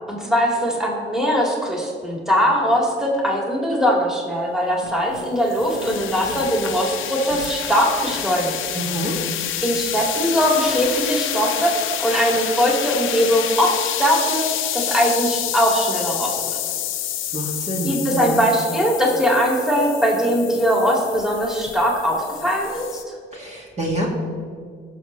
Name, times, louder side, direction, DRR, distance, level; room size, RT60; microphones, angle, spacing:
voice 1, 0.1-8.6 9.6-16.4 17.8-23.0, equal, ahead, -2 dB, 2.3 m, -21 dB
sound 1, 4.8-23.0, left 11 dB, 85° left, 0.7 m, -28 dB
voice 2, 8.7-9.2 17.3-18.5 23.3-24.1, right 1 dB, 35° right, -3 dB, 2.1 m, -27 dB
15.5 x 6.4 x 3.2 m, 2.2 s
cardioid pair, 90°, 20 cm